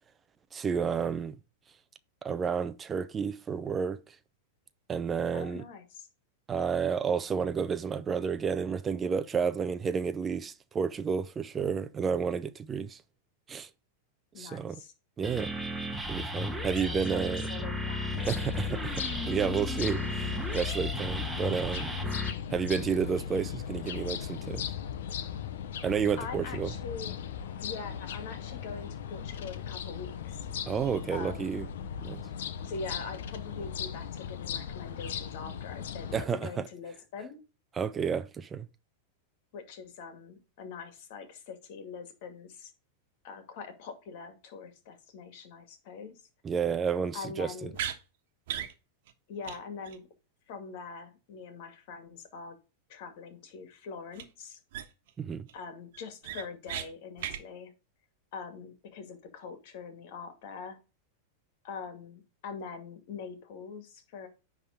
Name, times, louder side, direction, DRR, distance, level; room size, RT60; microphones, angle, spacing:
voice 1, 0.5-1.4 2.2-4.2 4.9-5.6 6.5-13.0 13.5-13.7 14.4-14.8 15.2-15.5 16.1-17.5 18.3-22.2 22.5-24.6 25.8-26.7 30.7-31.6 32.0-32.2 36.1-36.5 37.8-38.7 46.4-47.7 55.2-55.5, right 6 dB, 20° right, 0.6 m, -31 dB
voice 2, 5.3-6.1 14.3-14.9 16.8-18.2 26.2-27.1 27.6-30.4 31.1-31.6 32.6-37.4 39.5-42.7 43.2-46.1 47.1-47.8 49.3-50.1 50.5-52.6 52.9-54.6 55.5-57.7 58.3-60.8 61.6-64.3, left 5 dB, 60° left, 2.2 m, -43 dB
sound 1, 15.2-22.3, left 1 dB, 5° right, 1.3 m, -34 dB
sound 2, 18.1-36.3, left 8 dB, 75° left, 0.9 m, -38 dB
sound 3, 47.7-48.0 48.5-48.7 49.1-49.2 49.4-49.6 49.8-50.0 54.1-54.2 54.7-55.1 55.5-55.6 55.9-56.9 57.2-57.4, right 10 dB, 65° right, 1.2 m, -36 dB
10.0 x 3.7 x 4.9 m
hypercardioid pair, 115°, 0 cm